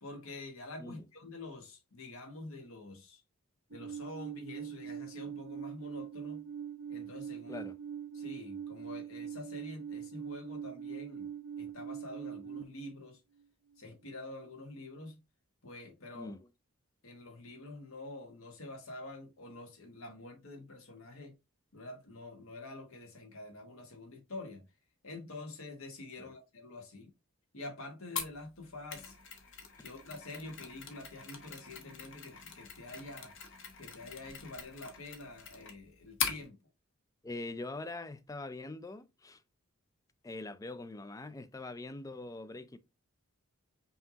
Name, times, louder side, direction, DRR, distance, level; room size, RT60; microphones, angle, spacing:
voice 1, 0.0-3.2 3.7-6.4 6.9-7.6 8.1-11.3 11.6-13.2 13.8-15.2 15.6-16.3 17.0-21.3 21.7-24.6 25.0-27.1 27.5-29.2 29.8-33.3 33.8-36.6, left 2 dB, 75° left, 1.4 m, -47 dB
Alarm, 3.7-12.6, right 8 dB, 85° right, 0.6 m, -42 dB
Mechanisms, 28.2-36.4, left 6 dB, 60° left, 1.1 m, -42 dB
voice 2, 37.2-39.4 40.2-42.8, left 2 dB, 15° left, 0.3 m, -43 dB
5.5 x 2.8 x 2.7 m
head